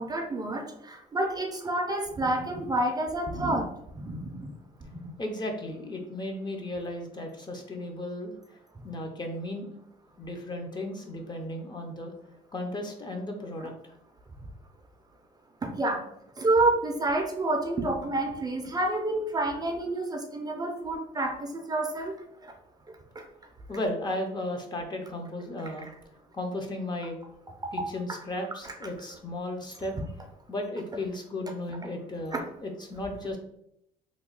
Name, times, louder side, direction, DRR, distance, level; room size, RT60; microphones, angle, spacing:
voice 1, 0.0-3.7 4.0-4.5 4.9-5.1 15.6-16.0 16.4-22.1 22.4-22.5 23.2-23.3 28.6-28.7 32.3-32.4, right 2 dB, 25° right, 3 dB, 0.5 m, -28 dB
voice 2, 5.2-8.3 8.8-9.7 10.2-12.1 12.5-13.7 23.7-25.9 26.3-27.2 27.7-30.0 30.5-33.4, left 1 dB, 25° left, 3 dB, 0.6 m, -35 dB
3.0 x 2.2 x 3.8 m, 0.75 s
cardioid pair, 110°, 17 cm